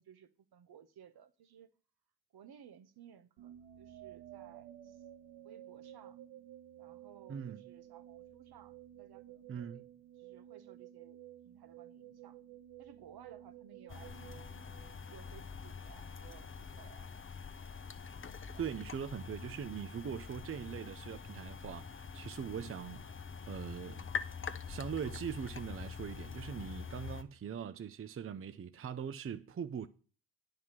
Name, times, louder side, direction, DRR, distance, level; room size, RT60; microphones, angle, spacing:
voice 1, 0.0-1.7 2.3-5.0 5.4-6.2 6.8-9.8 10.2-12.4 12.8-14.6 15.1-17.1 18.4-18.7, right 9 dB, 55° right, 1.1 m, -58 dB
sound 1, 3.4-15.4, right 12 dB, 75° right, 0.7 m, -53 dB
voice 2, 7.3-7.6 9.5-9.8 18.6-24.1 24.7-29.9, right 7 dB, 30° right, 0.6 m, -41 dB
sound 2, 13.9-27.2, left 5 dB, 25° left, 0.8 m, -45 dB
9.3 x 4.8 x 7.4 m
supercardioid pair, 60°, 46 cm